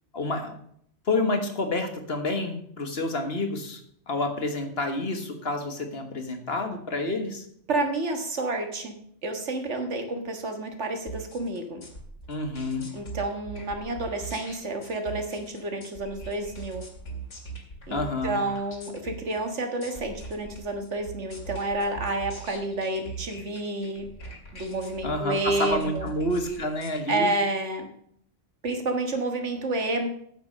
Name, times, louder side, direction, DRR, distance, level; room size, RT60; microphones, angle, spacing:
voice 1, 0.1-0.5 1.1-3.8 4.1-7.4 12.3-12.9 17.9-18.4 25.0-27.3, left 2 dB, 55° left, 5 dB, 1.7 m, -29 dB
voice 2, 7.7-8.9 9.2-11.8 12.9-16.8 17.9-24.1 24.5-26.1 27.1-27.9 28.6-30.1, right 2 dB, 70° right, 5 dB, 1.8 m, -29 dB
sound 1, 11.1-27.0, right 4 dB, 90° left, 2.6 m, -41 dB
9.0 x 7.5 x 6.4 m, 0.66 s
omnidirectional pair, 1.2 m